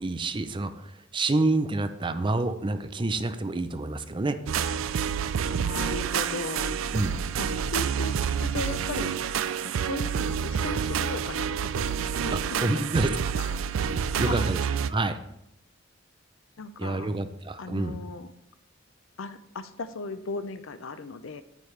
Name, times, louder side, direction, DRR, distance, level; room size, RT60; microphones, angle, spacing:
voice 1, 0.0-4.4 6.9-7.2 12.6-13.1 14.0-14.6 14.9-15.2 16.8-18.0, right 2 dB, 25° right, 10 dB, 0.5 m, -28 dB
sound 1, 4.5-14.9, right 7 dB, 85° right, 0.4 m, -28 dB
voice 2, 5.5-6.8 7.4-9.2 9.6-11.9 12.1-13.5 14.1-14.6 16.6-17.1 17.6-18.3 19.2-21.4, left 3 dB, 75° left, 12 dB, 0.6 m, -37 dB
9.2 x 8.7 x 3.3 m, 0.81 s
head